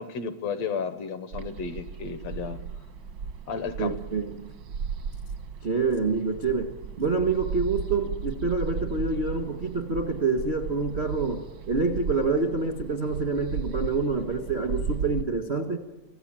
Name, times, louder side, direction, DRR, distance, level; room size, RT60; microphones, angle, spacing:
voice 1, 0.0-2.6 3.5-4.0, left 5 dB, 70° left, 11 dB, 1.8 m, -33 dB
sound 1, 1.3-15.2, right 6 dB, 70° right, 1.0 m, -36 dB
voice 2, 3.8-4.5 5.6-15.8, right 4 dB, 55° right, 4 dB, 0.7 m, -27 dB
25.5 x 15.5 x 8.9 m, 1.1 s
omnidirectional pair, 3.6 m